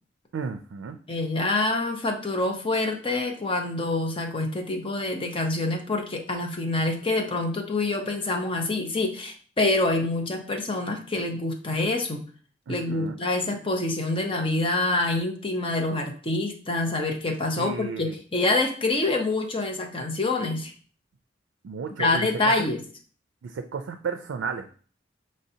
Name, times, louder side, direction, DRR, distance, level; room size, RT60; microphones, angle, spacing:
voice 1, 0.3-1.0 12.7-13.2 17.6-18.2 21.6-22.5 23.4-24.8, right 5 dB, 80° right, 7 dB, 0.4 m, -33 dB
voice 2, 1.1-12.2 12.7-20.7 22.0-22.8, left 2 dB, 30° left, 3 dB, 0.7 m, -26 dB
5.5 x 3.2 x 2.7 m, 0.42 s
head